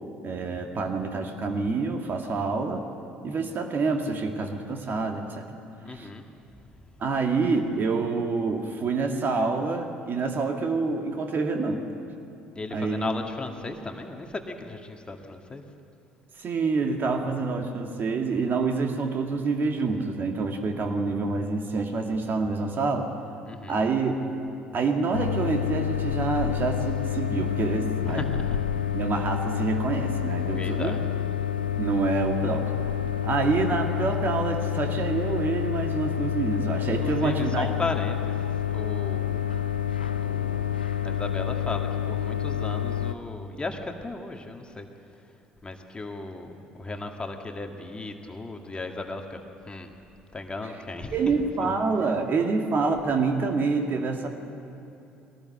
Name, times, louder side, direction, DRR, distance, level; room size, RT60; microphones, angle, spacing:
voice 1, 0.2-2.8 3.2-5.5 5.9-6.1 7.0-11.8 12.7-13.1 16.4-23.1 23.7-24.2 24.7-28.3 28.9-31.0 31.8-32.7 33.2-37.8 51.1-54.3, right 4 dB, 40° right, 4 dB, 2.2 m, -27 dB
voice 2, 5.8-6.2 12.6-15.6 23.5-23.8 28.1-28.6 30.4-31.0 37.0-38.4 38.7-39.4 40.2-44.9 45.6-49.4 49.7-49.9 50.3-51.1 51.6-51.8, left 3 dB, 20° left, 3 dB, 1.9 m, -36 dB
sound 1, 25.1-43.1, left 10 dB, 85° left, 0.5 m, -28 dB
22.5 x 18.0 x 7.7 m, 2.8 s
figure-of-eight pair, 55°, 5 cm